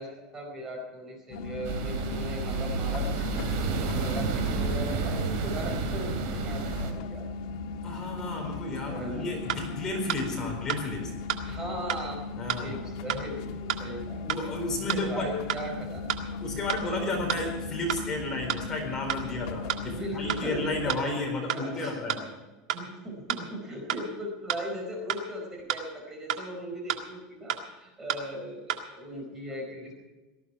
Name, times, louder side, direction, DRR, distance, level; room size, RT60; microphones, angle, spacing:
voice 1, 0.0-7.2 7.9-8.0 8.9-9.3 9.6-9.7 10.3-10.5 11.5-12.2 12.6-14.3 14.7-16.3 19.8-21.1 21.5-22.0 22.7-29.9, equal, 15° right, 1 dB, 4.6 m, -38 dB
sound 1, 1.3-21.0, left 4 dB, 70° left, 1.8 m, -37 dB
sound 2, 1.6-6.9, right 4 dB, 55° right, 3.3 m, -30 dB
voice 2, 7.8-11.1 12.4-13.1 14.3-15.3 16.4-22.2, left 2 dB, 20° left, 0 dB, 4.3 m, -33 dB
sound 3, 9.5-9.6 10.1-10.2 10.7-10.8 11.3-11.4 11.9-12.0 12.5-12.6 13.1-13.2 13.7-13.8 14.3-14.4 14.9-15.0 15.5-15.6 16.1-16.2 16.7-16.8 17.3-17.4 17.9-18.0 18.5-18.6 19.1-19.2 19.7-19.8 20.3-20.4 20.9-21.0 21.5-21.6 22.1-22.2 22.7-22.8 23.3-23.4 23.9-24.0 24.5-24.6 25.1-25.2 25.7-25.8 26.3-26.4 26.9-27.0 27.5-27.6 28.1-28.2 28.7-28.8, right 10 dB, 85° right, 1.8 m, -30 dB
18.5 x 14.5 x 4.7 m, 1.2 s
supercardioid pair, 165°, 3 cm